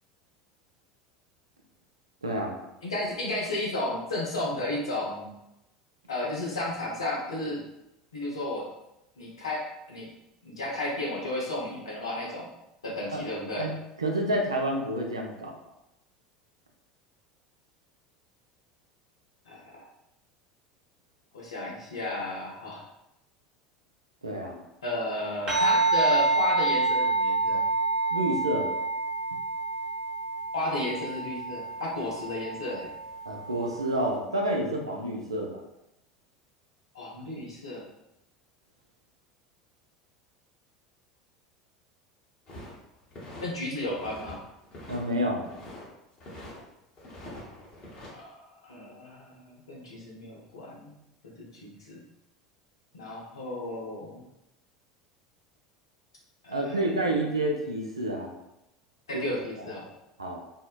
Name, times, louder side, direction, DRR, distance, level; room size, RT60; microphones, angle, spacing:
voice 1, 2.2-2.6 13.1-13.2 13.6-13.7 14.0-15.5 24.2-24.6 28.1-28.7 33.3-35.6 44.9-45.4 56.5-58.3 59.1-59.3 60.2-60.4, right 1 dB, 85° right, 1 dB, 0.4 m, -29 dB
voice 2, 2.8-5.3 6.1-7.6 8.1-8.6 9.2-10.1 10.4-12.5 12.8-13.7 19.5-19.8 21.3-22.8 24.8-27.6 30.5-32.9 36.9-37.8 43.4-44.4 48.1-50.9 51.4-52.0 52.9-54.2 56.4-56.8 59.1-59.9, left 1 dB, 80° left, -3 dB, 0.7 m, -33 dB
sound 1, 25.5-34.2, right 3 dB, 35° right, 0.7 m, -28 dB
sound 2, 42.5-43.5 43.8-44.4 44.6-45.9 46.2-46.6 47.0-48.1, left 1 dB, 40° left, 0.9 m, -44 dB
2.7 x 2.0 x 2.3 m, 0.88 s
figure-of-eight pair, 75°, 3 cm